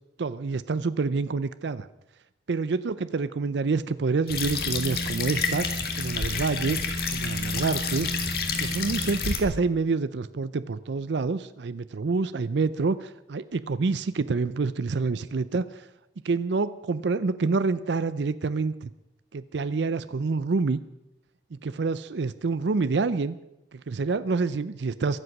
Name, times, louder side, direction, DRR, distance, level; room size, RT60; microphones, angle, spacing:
voice 1, 0.2-1.9 2.5-6.8 7.1-8.1 8.6-15.9 16.2-18.9 19.3-20.8 21.5-23.4 23.7-25.2, right 4 dB, 80° right, 14 dB, 0.5 m, -27 dB
sound 1, 4.3-9.4, left 3 dB, 55° left, 1.8 m, -29 dB
23.0 x 8.0 x 6.0 m, 0.91 s
head